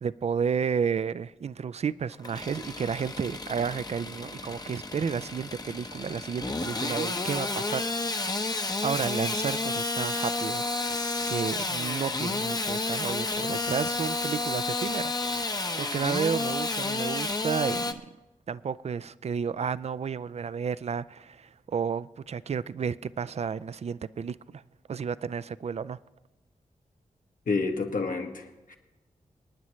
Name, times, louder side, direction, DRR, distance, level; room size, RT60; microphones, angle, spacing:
voice 1, 0.0-8.2 8.8-10.9 11.3-15.2 15.5-18.1 18.5-24.6 24.9-26.0, right 6 dB, 50° right, 0.4 m, -32 dB
Engine starting / Sawing, 2.1-17.9, left 2 dB, 30° left, 0.7 m, -31 dB
voice 2, 27.5-28.8, left 4 dB, 75° left, 1.4 m, -29 dB
26.0 x 9.7 x 3.2 m
wide cardioid pair, 70°, 14 cm